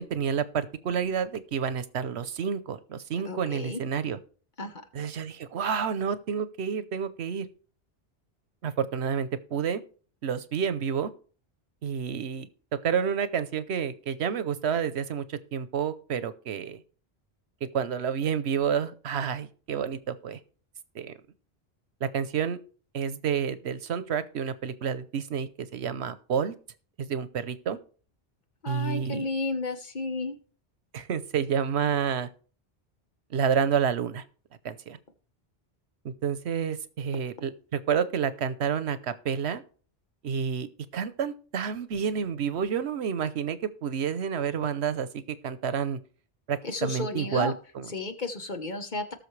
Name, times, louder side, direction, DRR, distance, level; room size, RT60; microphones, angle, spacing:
voice 1, 0.0-4.2 4.9-7.5 8.6-9.8 10.2-11.1 11.8-12.5 12.8-16.8 17.7-20.4 20.9-21.2 22.0-22.6 22.9-26.5 27.0-27.8 28.7-29.3 30.9-32.3 33.3-34.2 34.6-35.0 36.0-39.6 40.2-46.0 46.5-47.9, right 7 dB, 85° right, 13 dB, 1.1 m, -29 dB
voice 2, 3.2-3.8 4.6-4.8 28.6-30.4 46.6-47.5 47.9-49.1, left 3 dB, 45° left, 6 dB, 1.2 m, -32 dB
18.5 x 6.4 x 3.2 m, 0.40 s
omnidirectional pair, 1.1 m